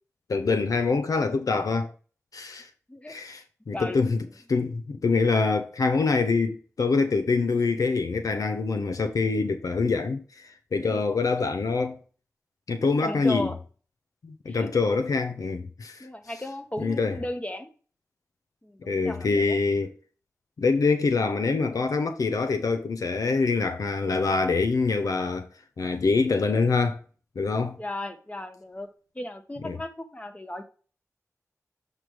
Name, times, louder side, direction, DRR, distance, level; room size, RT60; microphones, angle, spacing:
voice 1, 0.3-1.9 2.3-2.7 3.1-4.2 4.5-12.0 12.7-13.5 14.2-16.1 16.8-17.2 18.8-19.9 20.6-25.5 25.8-27.0 27.4-27.8 29.6-29.8, left 4 dB, 80° left, 0.6 m, -25 dB
voice 2, 10.7-11.0 13.0-13.6 14.5-14.7 16.0-17.7 18.6-19.6 27.8-28.9 29.1-30.6, left 1 dB, 25° left, 1.3 m, -35 dB
7.5 x 3.2 x 5.0 m
cardioid pair, 45°, 6 cm